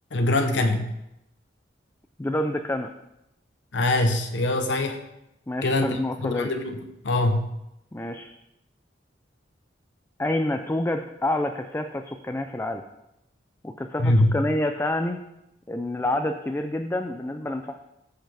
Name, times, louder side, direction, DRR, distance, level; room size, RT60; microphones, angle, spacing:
voice 1, 0.1-0.9 3.7-5.0 5.6-7.5 14.0-14.4, left 2 dB, 75° left, 6 dB, 0.9 m, -23 dB
voice 2, 2.2-2.9 5.5-6.5 7.9-8.3 10.2-12.8 13.6-15.2 15.7-17.8, left 1 dB, 15° left, 6 dB, 0.4 m, -28 dB
14.5 x 5.7 x 3.4 m, 0.86 s
head